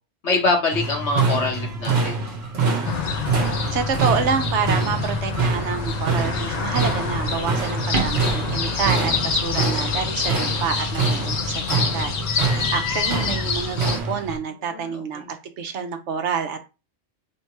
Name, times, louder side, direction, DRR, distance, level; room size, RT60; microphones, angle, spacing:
voice 1, 0.2-2.2 14.6-15.2, left 3 dB, 80° left, 0 dB, 1.6 m, -24 dB
sound 1, 0.7-14.4, right 4 dB, 70° right, 1.3 m, -25 dB
sound 2, 2.8-14.0, left 6 dB, 50° left, 0.5 m, -27 dB
voice 2, 3.7-12.1 12.4-16.6, right 6 dB, 90° right, 7 dB, 1.0 m, -28 dB
sound 3, 5.8-13.3, right 3 dB, 50° right, 0.8 m, -35 dB
3.5 x 2.9 x 4.5 m, 0.28 s
omnidirectional pair, 1.2 m